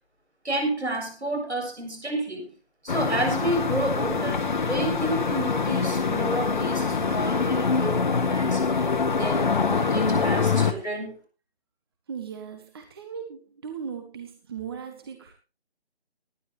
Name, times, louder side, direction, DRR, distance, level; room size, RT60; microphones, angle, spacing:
voice 1, 0.4-2.6 2.8-11.2, right 1 dB, 85° right, 4 dB, 7.2 m, -31 dB
sound 1, 2.9-10.7, left 5 dB, 45° left, 1.8 m, -24 dB
voice 2, 12.1-15.3, right 7 dB, 20° right, 6 dB, 1.5 m, -38 dB
19.5 x 11.0 x 3.2 m, 0.30 s
figure-of-eight pair, 160°, 33 cm